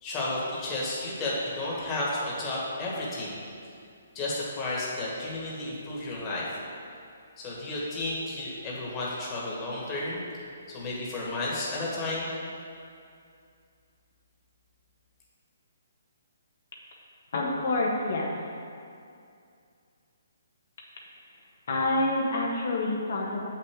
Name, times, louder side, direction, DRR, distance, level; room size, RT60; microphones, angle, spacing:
voice 1, 0.0-3.4 4.1-6.5 7.4-10.2 10.7-12.3, left 2 dB, 20° left, -6 dB, 1.6 m, -32 dB
voice 2, 17.3-18.4 21.7-23.5, left 2 dB, 60° left, -2 dB, 1.1 m, -27 dB
7.6 x 5.8 x 3.7 m, 2.4 s
hypercardioid pair, 160°, 0 cm